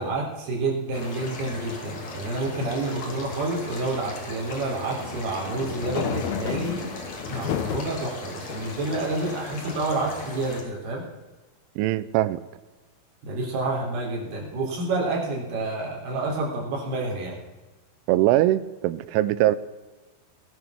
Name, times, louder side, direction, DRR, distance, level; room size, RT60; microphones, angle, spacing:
voice 1, 0.0-6.9 7.3-11.0 13.2-17.4, right 2 dB, 60° right, 5.8 m, -29 dB
sound 1, 0.9-10.6, left 1 dB, 45° left, 3.2 m, -38 dB
sound 2, 5.0-8.0 8.5-9.4, left 9 dB, 70° left, 2.6 m, -32 dB
voice 2, 11.8-12.4 18.1-19.6, right 15 dB, 90° right, 3.1 m, -21 dB
18.5 x 10.5 x 5.9 m
omnidirectional pair, 5.4 m